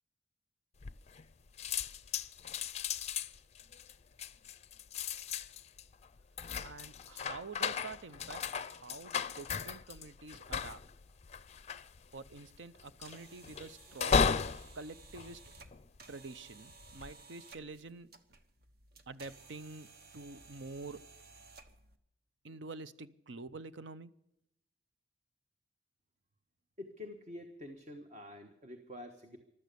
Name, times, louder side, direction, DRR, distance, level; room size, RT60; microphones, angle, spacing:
sound 1, 0.8-1.3 1.6-16.1 16.7-17.1, left 6 dB, 35° left, 0.5 m, -36 dB
voice 1, 6.6-8.4 8.7-10.8 12.1-14.3 14.8-15.4 16.1-18.1 19.1-19.9 20.1-21.0 22.4-24.1, right 3 dB, 75° right, 14 dB, 0.7 m, -47 dB
sound 2, 12.8-22.0, right 4 dB, 55° right, 1.2 m, -57 dB
voice 2, 26.8-29.4, left 1 dB, 40° right, 6 dB, 1.3 m, -47 dB
15.5 x 12.5 x 6.8 m, 0.82 s
head